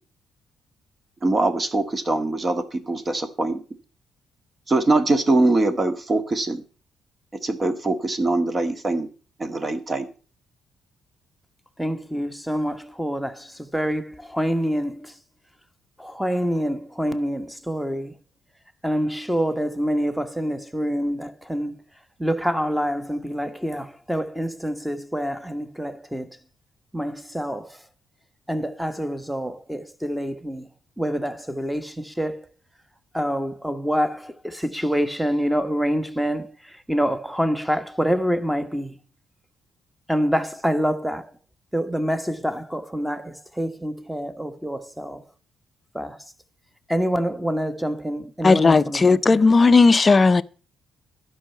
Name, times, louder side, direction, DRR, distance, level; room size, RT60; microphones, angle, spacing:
voice 1, 1.2-3.6 4.7-6.6 7.4-9.1 9.4-10.1, right 2 dB, 30° right, 1.7 m, -22 dB
voice 2, 11.8-15.1 16.0-18.1 18.8-21.7 22.2-26.3 26.9-27.8 28.5-30.7 31.0-32.5 33.1-39.0 40.1-41.2 41.7-45.2 45.9-46.2 46.9-49.4, equal, 5° right, 1.3 m, -26 dB
voice 3, 48.4-50.4, left 4 dB, 30° left, 0.6 m, -15 dB
11.5 x 5.6 x 8.3 m
cardioid pair, 90°, 0 cm